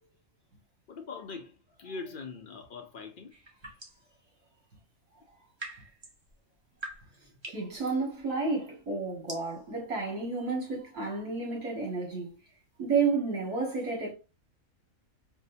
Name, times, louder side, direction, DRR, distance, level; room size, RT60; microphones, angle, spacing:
voice 1, 0.9-3.3, left 4 dB, 70° left, 0.5 m, -42 dB
sound 1, 3.3-4.1 5.2-12.9, right 2 dB, 25° right, 0.6 m, -48 dB
voice 2, 7.5-12.3 12.8-14.1, right 4 dB, 70° right, 2.1 m, -31 dB
4.5 x 2.0 x 2.7 m
omnidirectional pair, 1.5 m